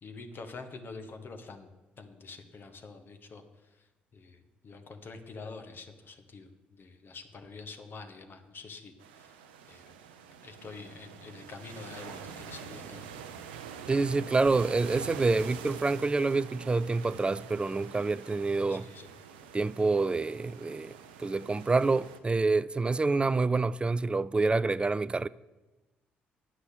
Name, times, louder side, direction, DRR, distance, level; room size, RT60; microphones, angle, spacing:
voice 1, 0.0-1.7 2.0-9.4 9.7-9.9 10.4-13.1 18.7-19.1, left 4 dB, 45° left, 1.5 m, -46 dB
sound 1, 9.0-22.2, right 7 dB, 75° right, 0.7 m, -46 dB
voice 2, 13.9-18.8 19.5-25.3, right 3 dB, 20° right, 0.4 m, -27 dB
9.9 x 6.1 x 7.4 m
figure-of-eight pair, 45°, 5 cm